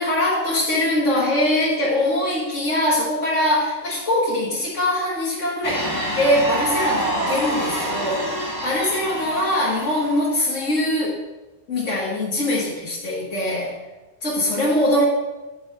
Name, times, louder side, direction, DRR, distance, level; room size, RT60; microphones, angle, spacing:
voice 1, 0.0-11.2 11.7-13.8 14.2-15.1, left 1 dB, 85° left, -6 dB, 2.1 m, -22 dB
sound 1, 5.6-10.3, right 1 dB, 15° left, 1.4 m, -27 dB
8.3 x 8.0 x 3.5 m, 1.1 s
omnidirectional pair, 1.2 m